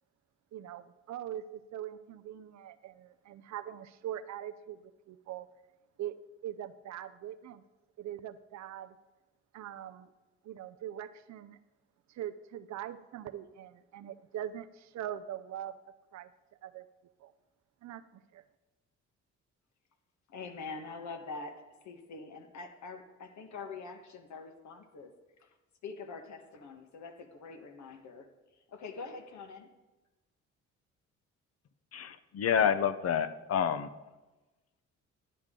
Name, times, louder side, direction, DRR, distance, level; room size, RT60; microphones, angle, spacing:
voice 1, 0.5-5.5 6.0-7.6 8.0-9.0 9.5-10.1 10.4-11.6 12.1-15.8 16.1-16.3 16.6-16.9 17.2-17.3 17.8-18.4, right 11 dB, 65° right, 12 dB, 0.6 m, -42 dB
voice 2, 20.3-25.1 25.4-25.5 25.8-28.3 28.7-29.7, left 4 dB, 70° left, 6 dB, 1.3 m, -44 dB
voice 3, 31.9-33.9, left 8 dB, 55° left, 12 dB, 0.7 m, -28 dB
10.0 x 10.0 x 3.7 m, 1.1 s
cardioid pair, 90°, 30 cm